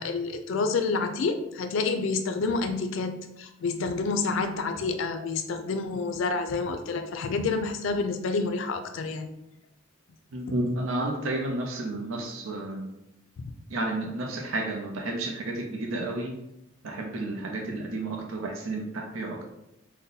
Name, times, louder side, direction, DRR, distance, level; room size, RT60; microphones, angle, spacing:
voice 1, 0.0-9.3 13.4-13.5, left 4 dB, 70° left, 7 dB, 0.3 m, -28 dB
voice 2, 10.3-12.9 13.7-16.4 16.8-19.4, right 2 dB, 75° right, 1 dB, 0.5 m, -31 dB
2.7 x 2.1 x 3.8 m, 0.85 s
head